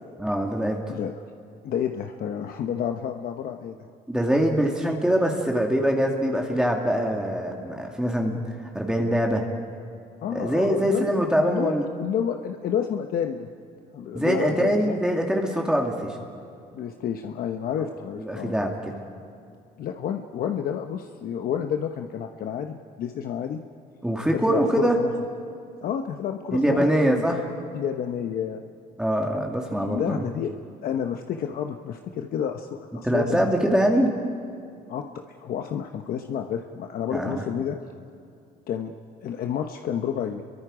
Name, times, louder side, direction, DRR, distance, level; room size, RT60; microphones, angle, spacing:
voice 1, 0.2-0.8 4.1-9.4 10.3-11.9 14.1-16.2 18.2-18.7 24.0-25.0 26.5-27.5 29.0-30.3 33.0-34.1 37.1-37.4, equal, 5° right, 1 dB, 2.1 m, -23 dB
voice 2, 1.6-3.9 10.2-11.1 11.4-13.5 13.9-15.0 16.7-18.5 19.8-23.6 24.3-25.1 25.8-27.4 27.7-28.6 29.7-30.5 30.8-33.7 34.9-37.8 38.7-38.9 39.2-40.4, left 8 dB, 60° left, 5 dB, 1.0 m, -30 dB
29.0 x 23.0 x 5.0 m, 2.4 s
cardioid pair, 110°, 17 cm